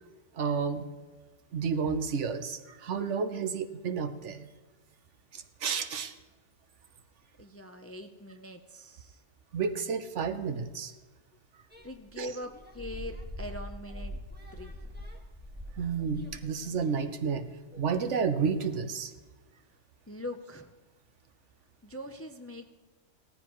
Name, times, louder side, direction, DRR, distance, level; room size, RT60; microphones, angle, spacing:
voice 1, 0.4-0.9 1.5-4.5 5.3-6.1 9.5-10.9 12.2-12.3 15.8-17.4 17.8-19.1, right 6 dB, 75° right, 10 dB, 1.2 m, -31 dB
voice 2, 7.4-9.2 11.8-14.2 14.5-14.8 20.1-20.7 21.8-22.7, left 1 dB, 15° left, 6 dB, 0.5 m, -42 dB
sound 1, 11.7-17.0 17.7-18.7, equal, 10° right, 1.7 m, -44 dB
17.5 x 14.0 x 3.1 m, 1.3 s
omnidirectional pair, 1.2 m